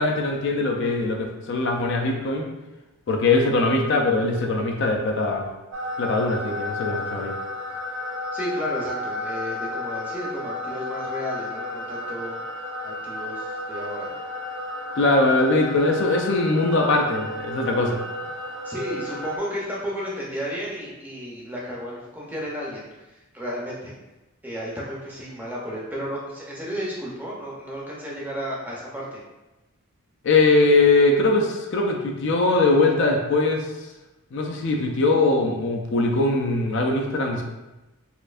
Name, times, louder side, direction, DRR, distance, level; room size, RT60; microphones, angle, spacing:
voice 1, 0.0-2.5 3.1-5.5 6.0-7.3 15.0-18.0 30.2-33.7 34.3-37.4, left 2 dB, 55° left, 1 dB, 0.4 m, -21 dB
sound 1, 5.7-19.4, left 1 dB, 70° right, 0.6 m, -32 dB
voice 2, 8.3-12.4 12.8-14.1 18.6-23.1 23.3-23.9 24.4-29.2, equal, 10° right, -5 dB, 0.6 m, -33 dB
4.2 x 2.6 x 2.5 m, 1.0 s
head